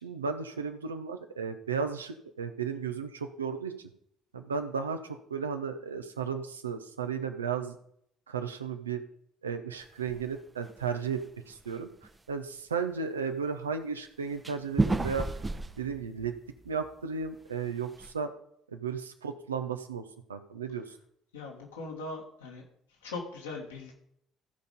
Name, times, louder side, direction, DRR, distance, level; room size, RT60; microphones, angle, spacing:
voice 1, 0.0-3.9 4.3-7.8 8.3-9.0 9.4-11.9 12.3-15.3 15.8-16.3 16.6-18.3 18.7-21.0, right 6 dB, 80° right, 7 dB, 0.8 m, -34 dB
sound 1, 10.1-10.3 10.7-11.1 11.5-11.6 12.0-12.1 14.4-16.9 17.2-17.3 17.7-18.1, right 2 dB, 20° right, 0.8 m, -31 dB
voice 2, 21.3-22.6 23.0-23.9, left 3 dB, 75° left, 0 dB, 2.2 m, -40 dB
15.0 x 5.3 x 5.3 m, 0.70 s
figure-of-eight pair, 50°, 0 cm